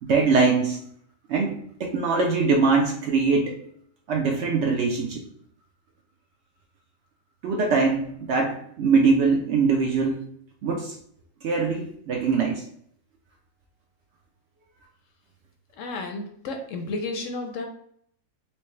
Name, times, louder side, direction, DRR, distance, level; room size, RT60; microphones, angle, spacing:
voice 1, 0.0-0.8 1.3-1.5 1.8-3.6 4.1-5.3 7.4-10.2 10.6-10.9 11.4-12.6, right 4 dB, 65° right, 1 dB, 0.7 m, -22 dB
voice 2, 15.8-17.6, left 3 dB, 70° left, 4 dB, 0.8 m, -32 dB
4.4 x 2.0 x 3.1 m, 0.67 s
omnidirectional pair, 1.5 m